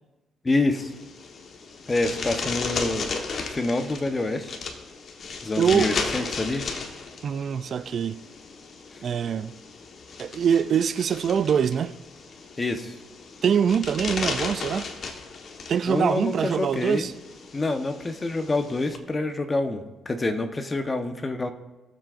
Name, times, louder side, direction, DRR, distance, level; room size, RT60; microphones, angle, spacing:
voice 1, 0.4-0.9 1.9-3.1 3.5-4.6 5.4-6.6 12.6-12.9 15.9-17.1 17.5-21.5, left 2 dB, 25° left, 1.1 m, -27 dB
sound 1, 0.8-19.0, left 4 dB, 55° left, 1.3 m, -35 dB
voice 2, 5.6-6.0 7.2-8.2 9.0-9.5 10.2-12.0 13.4-14.9 15.7-17.1, right 7 dB, 55° right, 0.4 m, -24 dB
21.5 x 7.6 x 2.6 m
cardioid pair, 90°, 0 cm